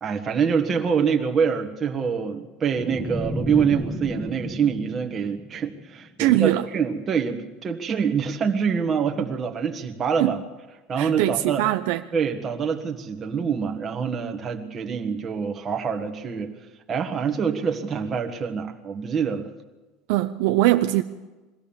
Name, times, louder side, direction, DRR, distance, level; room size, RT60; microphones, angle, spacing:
voice 1, 0.0-10.4 10.9-11.6 12.1-16.5 16.9-19.5, right 6 dB, 20° right, 1.5 m, -25 dB
sound 1, 2.8-6.0, equal, ahead, 1.6 m, -32 dB
voice 2, 6.2-6.6 10.2-10.4 11.0-12.0 20.1-21.0, right 16 dB, 60° right, 0.7 m, -21 dB
22.5 x 16.0 x 7.2 m
cardioid pair, 175°, 0 cm